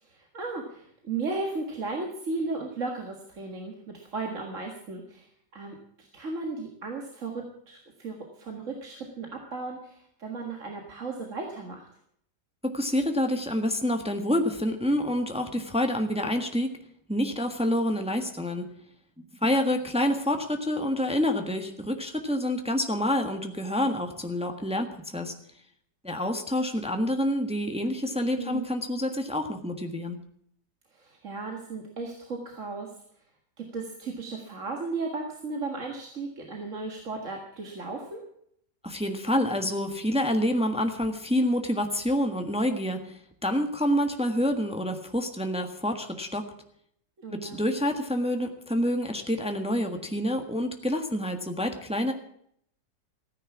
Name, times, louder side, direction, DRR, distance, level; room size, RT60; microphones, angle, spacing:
voice 1, 0.0-5.3 5.5-11.9 28.3-28.7 30.9-32.9 33.6-38.2 47.2-47.6, right 3 dB, 45° right, 1 dB, 2.1 m, -35 dB
voice 2, 12.6-16.7 17.1-18.6 19.2-25.3 26.0-30.2 38.8-46.4 47.3-52.1, left 1 dB, 5° right, 5 dB, 1.2 m, -27 dB
15.0 x 9.8 x 7.1 m, 0.68 s
omnidirectional pair, 1.9 m